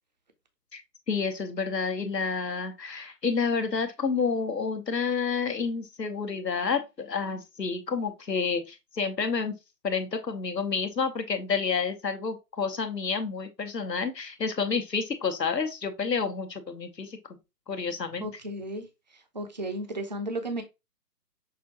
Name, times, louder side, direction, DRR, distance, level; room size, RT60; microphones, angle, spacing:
voice 1, 1.1-9.6 9.8-17.2 17.7-18.3, left 5 dB, 85° left, 1.0 m, -29 dB
voice 2, 18.2-18.9 19.1-20.6, right 1 dB, 30° right, 0.4 m, -34 dB
6.0 x 2.5 x 2.8 m
figure-of-eight pair, 135°, 49 cm